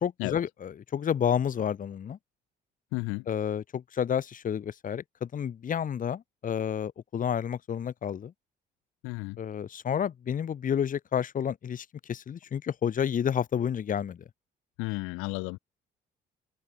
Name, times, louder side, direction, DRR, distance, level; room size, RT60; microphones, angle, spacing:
voice 1, 0.0-2.2 3.3-8.3 9.4-14.2, left 8 dB, 40° left, 0.8 m, -30 dB
voice 2, 2.9-3.3 9.0-9.4 14.8-15.6, left 26 dB, 80° left, 0.6 m, -33 dB
open air
supercardioid pair, 60°, 21 cm